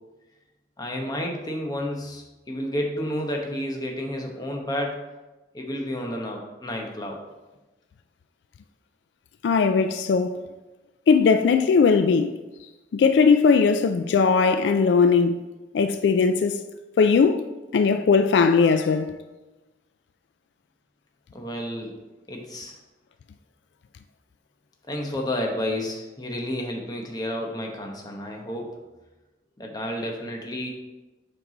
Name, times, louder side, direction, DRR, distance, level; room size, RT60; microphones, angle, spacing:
voice 1, 0.8-5.0 5.5-7.2 21.3-22.0 22.3-22.7 24.9-28.7 29.6-30.7, left 1 dB, 20° left, 1.0 m, -31 dB
voice 2, 9.4-10.4 11.1-12.4 12.9-15.4 15.7-16.6 17.0-17.4 17.7-19.2, left 5 dB, 75° left, 0.3 m, -19 dB
7.8 x 4.6 x 3.8 m
head